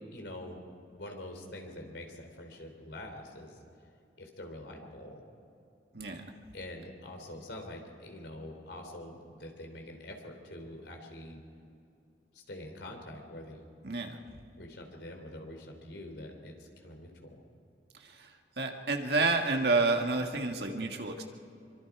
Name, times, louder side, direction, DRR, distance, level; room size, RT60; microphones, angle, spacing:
voice 1, 0.1-0.6 0.9-3.6 4.2-5.2 6.5-11.4 12.3-13.6 14.6-17.4, left 1 dB, 75° left, 3 dB, 3.3 m, -45 dB
voice 2, 13.8-14.2 18.0-18.3 18.6-21.2, right 3 dB, 65° right, 3 dB, 1.8 m, -29 dB
24.0 x 24.0 x 4.9 m, 2.6 s
head